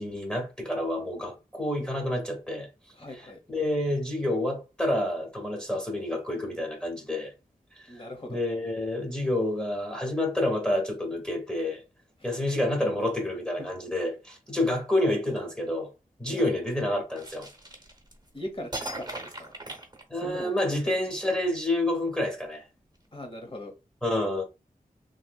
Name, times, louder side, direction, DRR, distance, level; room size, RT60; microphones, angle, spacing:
voice 1, 0.0-2.7 3.5-7.3 7.8-7.9 8.3-11.8 12.2-15.9 16.2-17.5 20.1-22.7 24.0-24.4, left 1 dB, 5° left, 1.3 m, -28 dB
voice 2, 2.9-3.4 7.9-8.4 12.2-12.5 13.6-13.7 16.2-16.5 18.3-19.8 20.1-20.5 23.1-23.7, left 1 dB, 35° left, 1.1 m, -40 dB
sound 1, 17.2-18.3 18.7-20.6, right 2 dB, 30° right, 1.1 m, -39 dB
3.2 x 2.9 x 2.3 m
wide cardioid pair, 60°, 15 cm